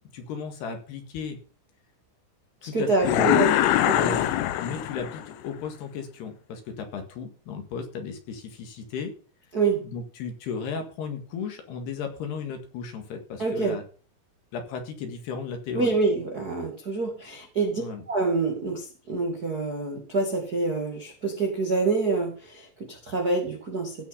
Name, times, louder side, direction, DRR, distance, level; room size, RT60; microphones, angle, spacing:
voice 1, 0.1-1.4 2.6-3.5 3.8-4.3 4.6-9.1 9.8-13.8 14.5-15.9 17.8-18.0, left 6 dB, 60° left, 6 dB, 3.5 m, -34 dB
voice 2, 2.7-3.5 3.8-4.2 9.5-9.8 13.4-13.7 15.7-17.8 18.1-24.1, right 3 dB, 80° right, 1 dB, 0.8 m, -26 dB
sound 1, 3.0-5.3, left 13 dB, 80° left, 3.2 m, -23 dB
16.5 x 6.2 x 5.6 m, 0.39 s
omnidirectional pair, 6.0 m